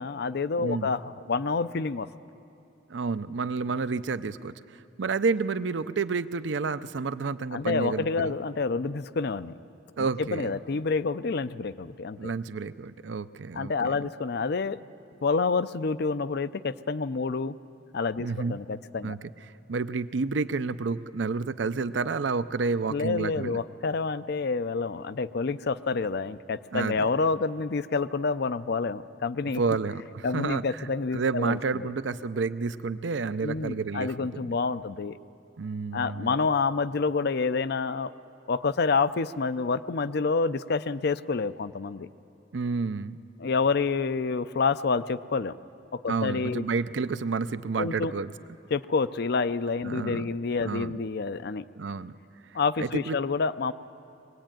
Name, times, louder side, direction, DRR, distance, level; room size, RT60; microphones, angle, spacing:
voice 1, 0.0-2.1 7.5-9.6 10.0-12.3 13.5-14.8 15.2-17.6 17.9-19.2 22.9-29.6 30.2-31.9 33.4-35.2 35.9-38.1 38.5-42.1 43.4-45.6 45.9-46.7 47.8-48.1 48.7-51.6 52.5-53.7, left 4 dB, 60° left, 15 dB, 0.5 m, -28 dB
voice 2, 0.6-0.9 2.9-8.4 10.0-10.5 12.2-14.1 18.2-18.6 19.0-19.3 19.7-23.6 26.7-27.1 29.6-30.9 31.1-34.5 35.6-36.5 42.5-43.2 46.1-48.3 49.8-50.3 50.6-51.0 51.8-52.1 52.8-53.2, right 4 dB, 70° right, 14 dB, 0.6 m, -30 dB
22.5 x 18.5 x 9.0 m, 2.7 s
head